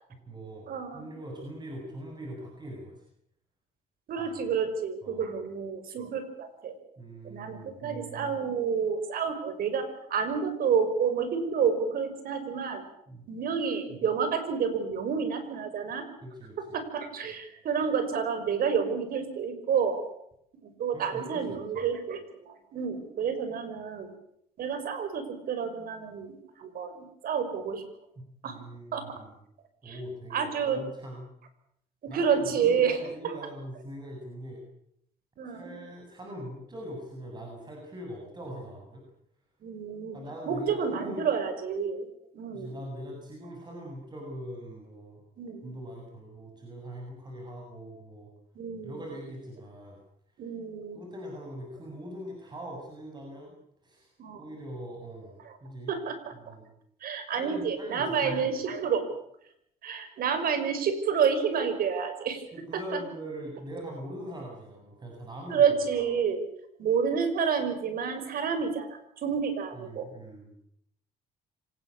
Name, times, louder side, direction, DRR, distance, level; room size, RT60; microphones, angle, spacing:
voice 1, 0.1-0.7 0.9-3.0 4.2-4.4 5.0-5.2 7.0-7.8 13.1-13.3 16.2-16.6 20.9-21.4 21.7-21.9 28.2-29.3 29.8-31.3 32.1-34.6 35.5-39.0 40.1-40.8 41.0-41.3 42.5-45.2 45.6-48.3 48.8-50.0 50.4-50.5 50.9-53.5 53.8-55.9 56.3-56.7 57.3-58.4 62.5-65.7 66.0-66.1 69.7-70.5, equal, 25° right, 0 dB, 7.7 m, -42 dB
voice 2, 0.7-1.1 4.1-6.7 7.2-12.8 13.3-16.0 16.7-20.0 20.6-24.1 24.6-27.8 28.4-28.6 28.9-29.2 29.8-30.0 30.3-30.8 32.0-33.4 35.4-35.7 39.6-40.2 40.5-42.1 42.3-42.7 45.4-45.7 48.6-49.0 50.4-51.0 54.2-54.5 55.4-55.6 55.9-56.6 57.0-59.1 59.8-62.4 62.9-63.0 65.5-66.4 66.8-70.1, right 6 dB, 60° right, 10 dB, 5.7 m, -29 dB
26.0 x 19.0 x 8.7 m, 0.72 s
cardioid pair, 110°, 17 cm